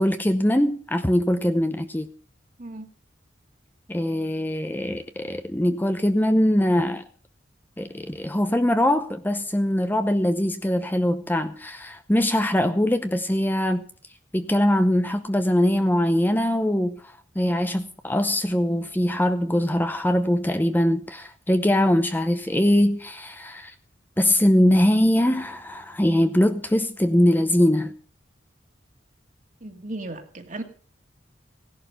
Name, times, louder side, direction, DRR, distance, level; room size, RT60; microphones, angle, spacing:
voice 1, 0.0-2.1 3.9-7.0 7.8-13.8 14.3-17.0 17.4-23.7 24.2-27.9, left 1 dB, 10° left, 0.7 m, -22 dB
voice 2, 29.6-30.6, right 2 dB, 45° right, 2.1 m, -35 dB
16.5 x 11.5 x 5.7 m
head